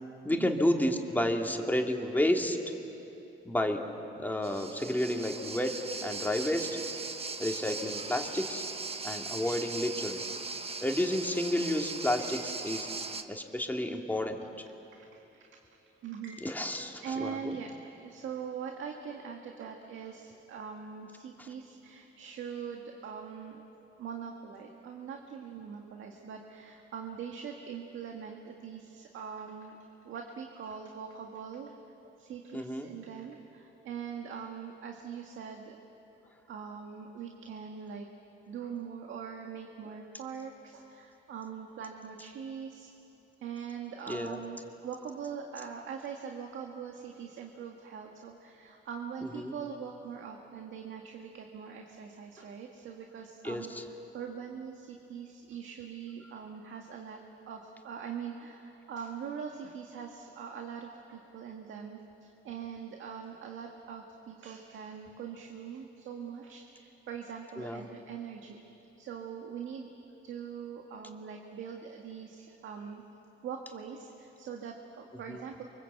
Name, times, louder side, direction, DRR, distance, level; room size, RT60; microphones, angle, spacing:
voice 1, 0.2-2.7 3.4-3.8 4.2-5.7 6.0-6.8 7.4-8.6 9.0-10.2 10.8-12.9 13.3-14.4 16.4-17.6 21.4-21.5 32.5-32.9 44.1-44.4 49.3-49.5 53.4-53.8 67.6-67.8 75.3-75.4, left 1 dB, 10° left, 2 dB, 2.5 m, -31 dB
sound 1, 4.4-13.2, right 4 dB, 30° right, 1.4 m, -39 dB
voice 2, 12.2-12.7 14.7-15.7 16.0-23.6 24.0-29.8 30.0-31.8 32.0-35.8 36.5-38.1 38.5-42.9 43.4-53.7 54.1-57.2 57.5-68.6 69.0-69.9 70.2-73.0 73.4-75.6, right 7 dB, 75° right, 2 dB, 1.9 m, -42 dB
29.5 x 24.5 x 8.2 m, 3.0 s
cardioid pair, 90°, 20 cm